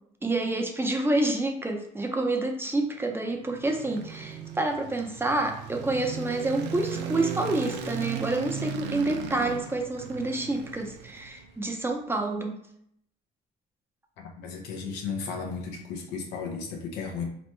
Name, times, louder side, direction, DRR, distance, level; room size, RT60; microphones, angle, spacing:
voice 1, 0.2-12.6, right 2 dB, 15° right, 2 dB, 0.6 m, -28 dB
sound 1, 3.2-11.6, right 7 dB, 90° right, 0.5 m, -37 dB
voice 2, 14.2-17.2, left 5 dB, 90° left, 2 dB, 0.9 m, -35 dB
4.2 x 3.1 x 3.2 m, 0.71 s
cardioid pair, 110°, 17 cm